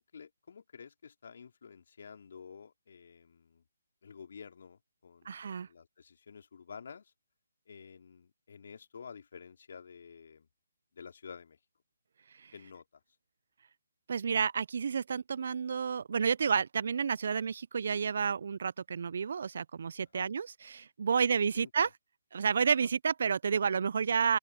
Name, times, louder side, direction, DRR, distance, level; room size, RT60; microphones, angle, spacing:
voice 1, 0.0-3.6 4.0-7.1 7.7-10.5 10.9-11.6 12.5-12.8 20.1-20.3 21.1-21.2 21.5-21.9 22.8-22.9, left 6 dB, 55° left, 2.9 m, -50 dB
voice 2, 5.3-5.7 12.4-12.5 14.1-21.9 22.3-24.4, right 6 dB, 55° right, 0.7 m, -30 dB
open air
figure-of-eight pair, 145°, 0 cm